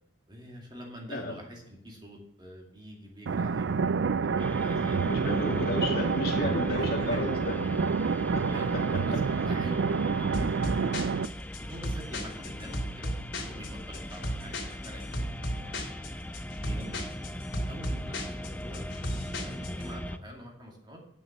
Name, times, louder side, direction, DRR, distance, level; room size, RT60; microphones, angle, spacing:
voice 1, 0.3-3.7 4.2-5.5 6.7-7.2 8.1-13.1 13.4-15.3 15.6-15.8 16.6-17.1 17.7-21.0, equal, 25° right, 0 dB, 2.3 m, -46 dB
sound 1, 3.3-11.3, right 5 dB, 70° right, 0.4 m, -28 dB
sound 2, 4.4-20.2, left 1 dB, 10° left, 0.4 m, -40 dB
voice 2, 5.0-7.5 8.3-8.4 8.7-9.2, left 2 dB, 50° left, -2 dB, 2.8 m, -32 dB
sound 3, 10.3-19.9, equal, 90° left, 3.0 m, -35 dB
9.3 x 7.0 x 6.7 m, 0.77 s
head